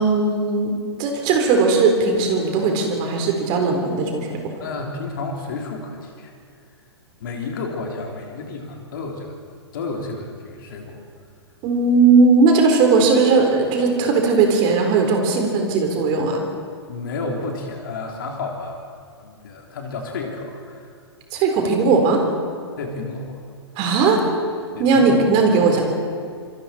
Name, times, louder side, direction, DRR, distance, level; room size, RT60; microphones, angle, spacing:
voice 1, 0.0-4.4 11.6-16.4 21.3-22.2 23.8-24.2 24.8-25.8, right 4 dB, 30° right, 3 dB, 4.0 m, -18 dB
voice 2, 4.6-6.3 7.2-9.4 9.7-11.0 16.9-18.8 19.2-20.9 22.8-23.4 24.7-25.3, left 3 dB, 50° left, 1 dB, 3.3 m, -31 dB
27.5 x 24.0 x 4.4 m, 2.2 s
figure-of-eight pair, 115°, 14 cm